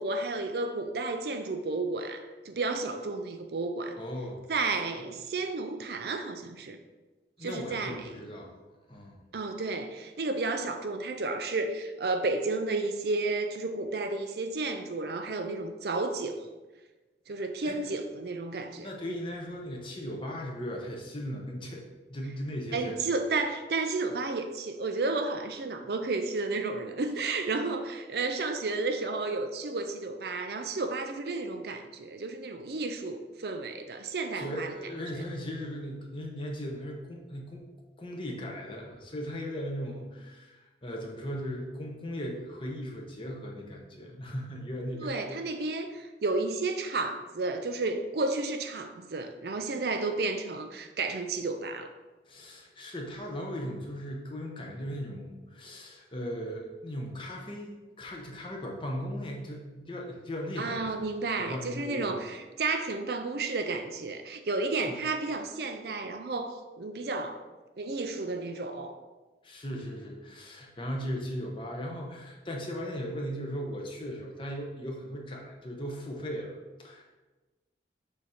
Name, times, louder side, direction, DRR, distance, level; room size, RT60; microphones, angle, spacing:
voice 1, 0.0-4.0 4.5-6.8 7.4-8.0 9.3-16.5 17.3-19.2 22.7-34.7 45.0-51.9 60.6-67.4 67.8-69.0, right 3 dB, 60° right, 6 dB, 0.5 m, -32 dB
voice 2, 4.0-5.2 7.4-8.5 8.9-9.2 17.6-17.8 18.8-21.8 22.1-23.0 34.3-37.6 38.0-45.3 52.3-61.1 61.4-62.2 64.7-65.0 69.4-77.1, equal, 30° left, 0 dB, 0.9 m, -38 dB
6.7 x 2.8 x 4.9 m, 1.2 s
head